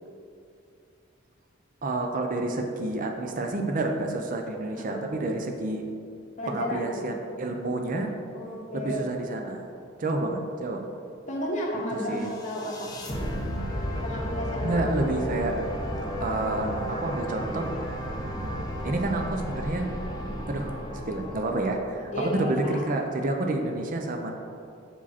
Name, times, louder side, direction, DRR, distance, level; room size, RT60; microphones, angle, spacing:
voice 1, 1.8-5.8 6.5-8.1 8.7-9.7 10.0-10.9 11.9-12.3 14.6-15.6 16.2-17.7 18.4-19.9 20.5-20.7 21.1-24.3, right 2 dB, 40° right, 3 dB, 0.5 m, -29 dB
voice 2, 4.7-5.2 6.4-7.2 8.3-9.1 11.3-13.0 14.0-14.9 22.1-22.8, equal, 35° left, -3 dB, 1.3 m, -33 dB
sound 1, 12.2-22.4, equal, 20° left, 0.8 m, -33 dB
7.2 x 4.9 x 4.1 m, 2.5 s
head